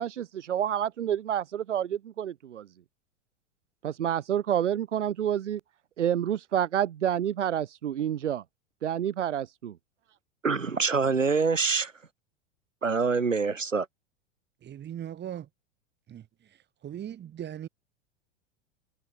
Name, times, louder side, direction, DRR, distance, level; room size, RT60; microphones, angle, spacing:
voice 1, 0.0-2.7 3.8-5.6 6.0-8.4 8.8-9.8, right 10 dB, 70° right, 1.6 m, -28 dB
voice 2, 10.4-11.9 12.8-13.9, right 4 dB, 90° right, 1.0 m, -25 dB
voice 3, 14.6-15.5 16.1-17.7, right 10 dB, 25° right, 6.0 m, -39 dB
figure-of-eight pair, 90°, 38 cm